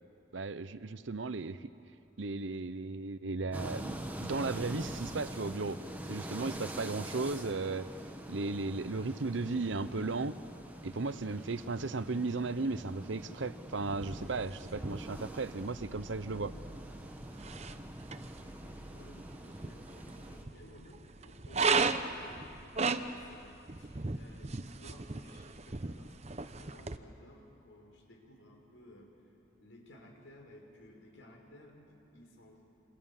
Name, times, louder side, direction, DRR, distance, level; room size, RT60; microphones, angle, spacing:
voice 1, 0.3-1.7 2.2-5.8 6.1-7.9 8.3-10.4 10.8-16.5, right 3 dB, 75° right, 14 dB, 0.8 m, -35 dB
sound 1, 3.5-20.4, right 1 dB, 10° right, 1.5 m, -45 dB
sound 2, 13.9-27.0, right 4 dB, 35° right, 0.8 m, -37 dB
voice 2, 18.4-29.1 29.6-32.8, left 1 dB, 80° left, 1 dB, 5.3 m, -57 dB
28.0 x 26.0 x 7.4 m, 2.7 s
head